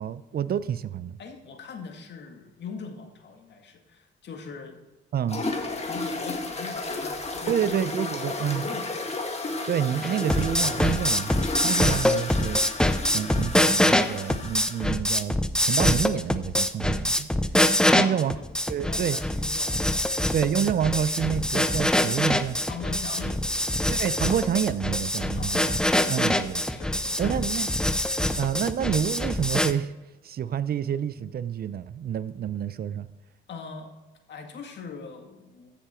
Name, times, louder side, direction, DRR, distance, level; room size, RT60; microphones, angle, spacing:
voice 1, 0.0-1.2 5.1-5.4 7.5-8.7 9.7-12.6 13.1-15.4 15.6-17.3 17.9-18.3 18.7-19.2 20.3-22.6 23.9-25.8 26.1-26.8 27.2-27.7 28.4-29.9 30.2-33.1, right 9 dB, 50° right, 16 dB, 0.5 m, -28 dB
voice 2, 1.2-4.8 5.6-7.7 8.2-9.0 9.5-9.6 17.8-18.5 18.8-20.5 22.7-23.7 24.2-24.5 25.3-25.6 26.4-27.7 33.5-33.9 34.3-35.7, left 5 dB, 60° left, 4 dB, 2.1 m, -41 dB
sound 1, 5.3-14.9, left 3 dB, 30° left, 1.8 m, -33 dB
sound 2, 10.0-29.7, left 1 dB, 5° left, 0.6 m, -24 dB
14.5 x 6.9 x 4.5 m, 1.1 s
cardioid pair, 90°, 20 cm